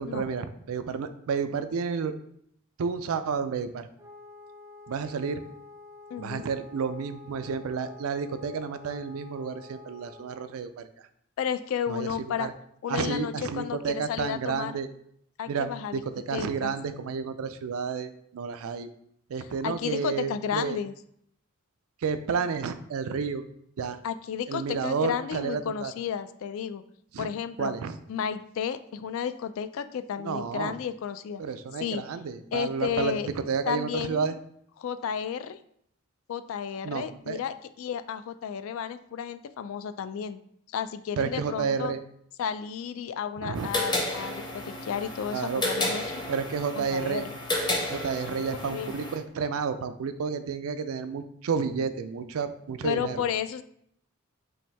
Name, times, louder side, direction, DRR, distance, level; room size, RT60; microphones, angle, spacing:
voice 1, 0.0-2.1 2.8-3.9 4.9-5.4 6.2-10.9 11.9-12.1 12.4-12.5 12.9-14.9 15.5-18.9 19.3-20.8 22.0-23.4 23.8-24.0 24.5-25.9 27.1-27.3 27.6-28.0 30.2-30.8 31.4-34.4 36.8-37.4 41.2-42.0 43.4-43.7 45.3-45.6 46.3-47.2 47.9-53.2, right 6 dB, 90° right, 11 dB, 0.4 m, -31 dB
Wind instrument woodwind instrument, 4.0-10.6, left 3 dB, 15° right, 0.4 m, -49 dB
voice 2, 6.1-6.5 11.4-12.5 12.8-14.8 15.4-16.0 16.3-16.7 19.6-20.9 24.0-26.8 27.2-27.7 28.1-31.4 31.8-32.0 32.5-33.3 33.7-34.3 34.8-35.6 36.3-40.4 40.7-41.9 42.4-46.2 46.7-47.3 48.5-49.0 52.8-53.6, left 8 dB, 75° left, 11 dB, 0.3 m, -32 dB
sound 1, 43.6-49.2, left 1 dB, 20° left, 0.7 m, -32 dB
5.5 x 2.6 x 3.3 m, 0.69 s
head